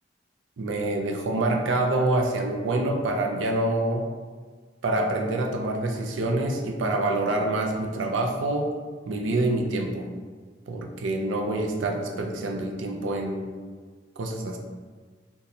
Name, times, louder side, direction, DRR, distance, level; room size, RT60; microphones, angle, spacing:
voice 1, 0.6-4.1 4.8-8.7 9.1-10.1 10.7-13.5 14.2-14.6, right 2 dB, 90° right, 2 dB, 0.4 m, -26 dB
2.8 x 2.3 x 3.8 m, 1.5 s
head